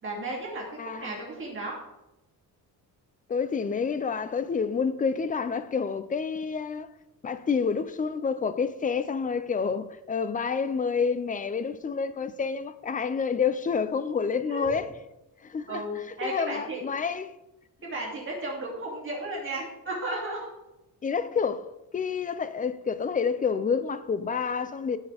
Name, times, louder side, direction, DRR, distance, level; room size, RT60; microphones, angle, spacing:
voice 1, 0.0-1.8 14.5-14.8 15.7-16.8 17.8-20.5, right 2 dB, 35° right, 2.6 m, -34 dB
voice 2, 0.8-1.1 3.3-6.9 7.2-14.9 15.4-17.3 21.0-21.7 21.9-25.0, left 5 dB, 20° left, 0.5 m, -28 dB
16.5 x 6.5 x 3.4 m
cardioid pair, 165°, 37 cm